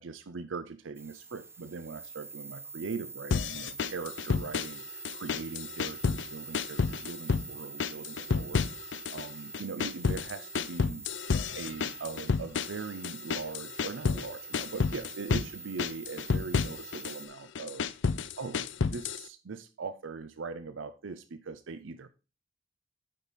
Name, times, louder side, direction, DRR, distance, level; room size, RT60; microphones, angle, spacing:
voice 1, 0.0-11.0 11.5-17.9 18.4-22.1, right 4 dB, 80° right, 11 dB, 0.6 m, -41 dB
sound 1, 0.9-17.3, right 4 dB, 15° right, 0.6 m, -45 dB
sound 2, 3.3-4.8 5.1-6.3 6.5-7.5 7.8-9.3 9.5-14.3 14.5-15.5 15.8-17.2 17.6-19.3, left 5 dB, 65° left, 0.5 m, -30 dB
9.2 x 5.4 x 4.1 m, 0.31 s
head